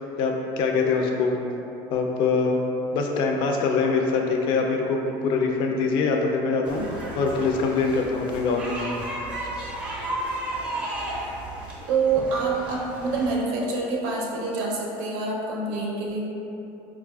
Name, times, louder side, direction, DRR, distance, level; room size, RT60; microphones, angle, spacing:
voice 1, 0.2-1.4 1.9-2.6 2.9-6.9 7.2-8.8, left 4 dB, 55° left, 1 dB, 0.4 m, -23 dB
sound 1, 6.6-13.3, right 1 dB, 10° right, 0.5 m, -34 dB
voice 2, 11.9-16.3, right 4 dB, 85° right, -2 dB, 0.5 m, -26 dB
4.3 x 2.4 x 2.3 m, 2.9 s
cardioid pair, 165°, 10 cm